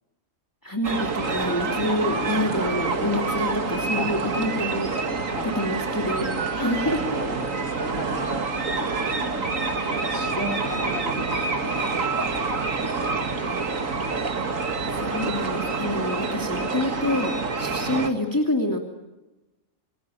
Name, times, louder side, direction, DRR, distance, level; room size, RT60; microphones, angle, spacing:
voice 1, 0.6-4.9 5.5-7.2 14.9-18.8, left 1 dB, 15° left, 2 dB, 2.8 m, -27 dB
sound 1, 0.8-18.1, right 4 dB, 85° right, 2.4 m, -27 dB
voice 2, 5.3-5.7 6.3-6.4 6.8-8.4 8.9-9.5 9.9-12.6 13.3-13.5, left 1 dB, 70° left, 5 dB, 4.5 m, -36 dB
27.5 x 23.0 x 9.3 m, 1.0 s
omnidirectional pair, 1.3 m